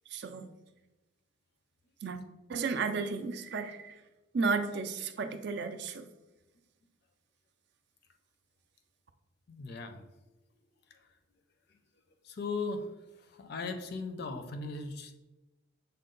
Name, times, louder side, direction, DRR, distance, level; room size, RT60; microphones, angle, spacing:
voice 1, 0.1-0.5 2.0-2.2 2.5-4.0 4.3-6.0, right 4 dB, 55° right, 9 dB, 0.4 m, -33 dB
voice 2, 9.5-10.0 12.2-12.9 13.3-15.2, left 3 dB, 50° left, 7 dB, 0.4 m, -37 dB
6.4 x 2.2 x 3.7 m, 1.0 s
head